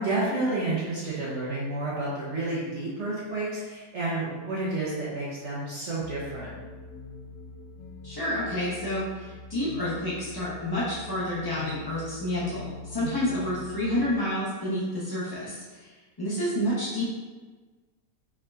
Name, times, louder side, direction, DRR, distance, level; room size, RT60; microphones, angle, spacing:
voice 1, 0.0-6.5 13.0-13.1, right 2 dB, 55° right, -7 dB, 1.0 m, -30 dB
sound 1, 6.0-14.2, left 4 dB, 70° left, 0.7 m, -44 dB
voice 2, 8.0-17.1, left 1 dB, 30° left, -8 dB, 0.4 m, -29 dB
5.3 x 3.6 x 2.4 m, 1.3 s
omnidirectional pair, 1.8 m